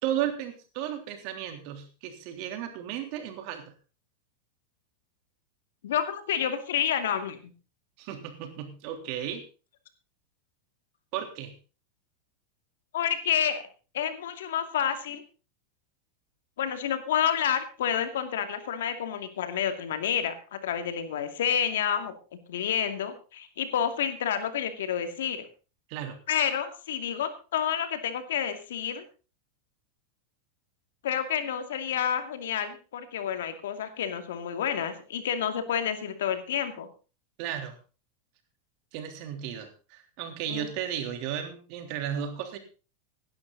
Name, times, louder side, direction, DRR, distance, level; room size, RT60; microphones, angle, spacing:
voice 1, 0.0-3.7 8.0-9.4 11.1-11.5 25.9-26.2 37.4-37.8 38.9-42.6, right 10 dB, 55° right, 6 dB, 3.3 m, -34 dB
voice 2, 5.8-7.4 12.9-13.6 13.9-15.2 16.6-22.1 22.5-25.5 26.3-29.0 31.0-36.9 40.5-40.7, left 8 dB, 85° left, 8 dB, 2.4 m, -29 dB
16.0 x 11.5 x 4.0 m, 0.35 s
supercardioid pair, 125°, 0 cm